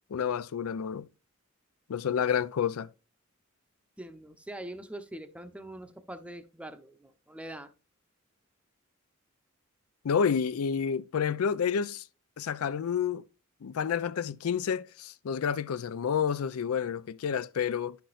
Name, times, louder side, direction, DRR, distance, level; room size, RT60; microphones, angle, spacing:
voice 1, 0.1-1.1 1.9-2.9 10.0-12.0 12.4-13.2 13.6-18.0, left 7 dB, 90° left, 0.4 m, -29 dB
voice 2, 4.0-7.7, right 1 dB, 5° right, 0.6 m, -43 dB
10.0 x 5.9 x 2.4 m
head